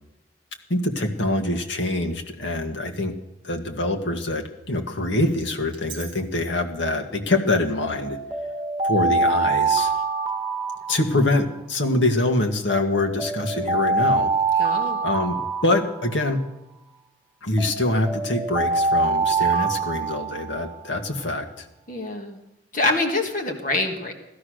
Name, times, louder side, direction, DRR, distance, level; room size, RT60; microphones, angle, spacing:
voice 1, 0.7-3.1 3.4-8.2 8.8-9.9 10.9-14.3 15.0-16.4 17.4-21.7, left 2 dB, 70° left, 4 dB, 1.8 m, -24 dB
Alarm, 5.7-6.1 7.8-11.6 12.7-16.5 17.6-20.8, right 3 dB, 25° right, 1.5 m, -25 dB
voice 2, 14.6-15.0 21.9-22.4 22.7-24.1, left 2 dB, 45° left, 4 dB, 1.7 m, -25 dB
16.5 x 12.5 x 6.4 m, 0.92 s
head